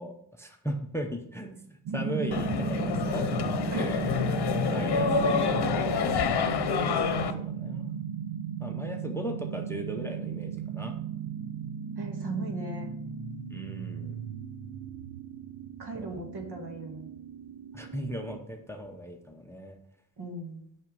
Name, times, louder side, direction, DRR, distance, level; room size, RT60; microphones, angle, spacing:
voice 1, 0.0-3.3 3.6-4.2 4.7-5.8 6.2-7.0 7.4-8.0 8.6-10.9 13.5-14.2 15.9-16.2 17.7-19.8, right 1 dB, 5° left, 4 dB, 0.7 m, -38 dB
sound 1, 1.9-18.4, right 7 dB, 90° right, 0.8 m, -35 dB
sound 2, 2.3-7.3, left 6 dB, 60° left, 0.9 m, -27 dB
voice 2, 4.5-5.1 12.0-12.9 15.8-17.1 20.2-20.6, right 3 dB, 60° right, 2 dB, 1.9 m, -37 dB
9.2 x 5.9 x 5.3 m, 0.70 s
wide cardioid pair, 155°, 45 cm